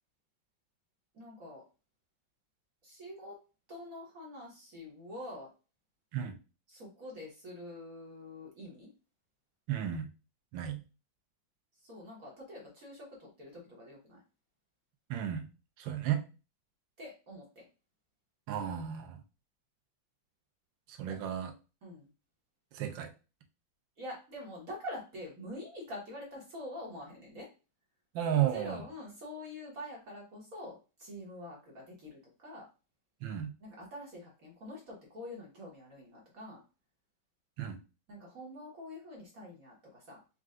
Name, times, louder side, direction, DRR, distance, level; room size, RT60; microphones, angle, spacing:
voice 1, 1.1-1.6 2.8-3.4 3.7-5.5 6.7-8.9 11.8-14.2 17.0-17.7 21.0-21.2 21.8-22.1 24.0-27.5 28.3-32.7 33.6-36.6 38.1-40.2, left 1 dB, 50° right, -3 dB, 1.6 m, -46 dB
voice 2, 9.7-10.1 10.5-10.8 15.1-15.5 15.8-16.2 18.5-19.2 20.9-21.5 22.7-23.1 28.1-28.9 33.2-33.5 37.6-37.8, right 10 dB, 85° right, 6 dB, 1.4 m, -33 dB
4.4 x 2.5 x 3.6 m, 0.32 s
omnidirectional pair, 2.0 m